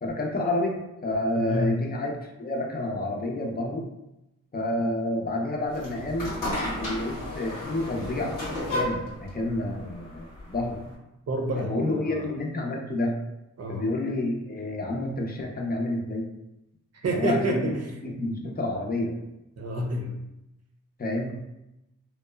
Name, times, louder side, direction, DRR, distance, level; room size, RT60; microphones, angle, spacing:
voice 1, 0.0-3.9 4.5-10.8 11.6-13.1 13.7-16.3 17.1-17.7 18.0-19.2 21.0-21.4, left 1 dB, 30° left, 0 dB, 0.6 m, -29 dB
voice 2, 1.3-1.8 11.3-12.3 13.6-13.9 16.9-17.9 19.6-20.1, right 1 dB, 50° right, 1 dB, 0.7 m, -29 dB
sound 1, 5.7-11.0, left 1 dB, 70° left, 0.9 m, -33 dB
2.9 x 2.0 x 2.2 m, 0.91 s
supercardioid pair, 45°, 33 cm